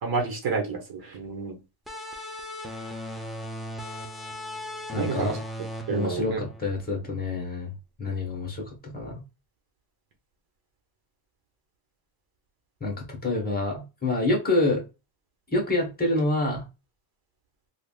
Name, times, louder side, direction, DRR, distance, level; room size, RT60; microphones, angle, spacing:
voice 1, 0.0-1.6 5.0-5.4 5.9-6.4, right 4 dB, 50° right, 1.1 m, -29 dB
sound 1, 1.9-7.1, equal, ahead, 0.4 m, -38 dB
voice 2, 4.9-5.4 5.9-7.7 8.0-9.2 12.8-14.8 15.5-16.6, left 2 dB, 20° left, 1.2 m, -27 dB
3.4 x 2.4 x 2.4 m
cardioid pair, 115°, 47 cm